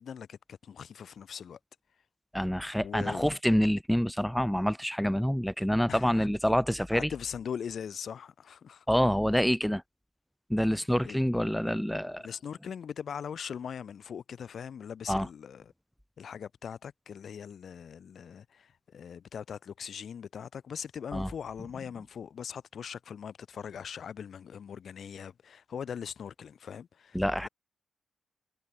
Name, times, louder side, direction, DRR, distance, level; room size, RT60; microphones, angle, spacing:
voice 1, 0.0-1.6 2.8-3.3 5.9-6.3 6.9-8.9 11.0-11.2 12.2-15.7 16.2-27.2 27.4-27.5, left 7 dB, 65° left, 1.8 m, -41 dB
voice 2, 2.3-7.1 8.9-9.8 10.5-12.3 15.1-15.3 21.1-21.3 27.1-27.5, equal, 5° left, 0.4 m, -27 dB
supercardioid pair, 50°, 0 cm